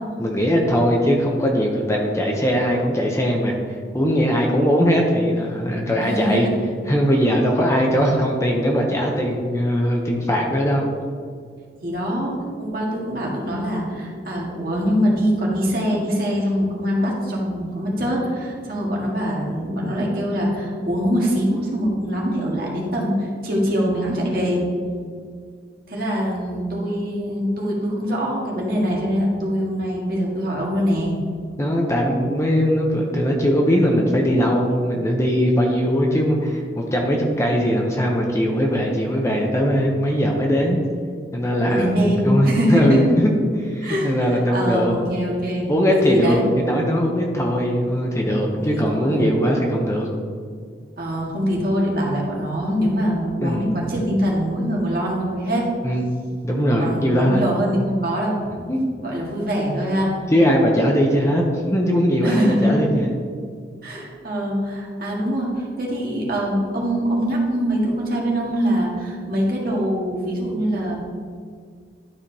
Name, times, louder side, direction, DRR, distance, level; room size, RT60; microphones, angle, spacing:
voice 1, 0.2-3.6 3.9-6.5 6.9-10.9 31.6-40.8 41.3-43.3 43.6-45.0 45.7-50.1 53.4-53.7 55.8-56.0 56.4-57.5 58.7-58.9 60.3-63.1, equal, 15° left, 0 dB, 0.7 m, -20 dB
voice 2, 6.0-6.7 11.8-24.6 25.9-31.2 41.7-43.2 43.8-44.1 44.5-46.4 48.6-49.3 51.0-55.7 56.8-58.4 59.0-60.1 62.2-63.0 63.8-71.0, equal, 55° right, -3 dB, 1.7 m, -23 dB
11.5 x 5.0 x 2.8 m, 2.1 s
head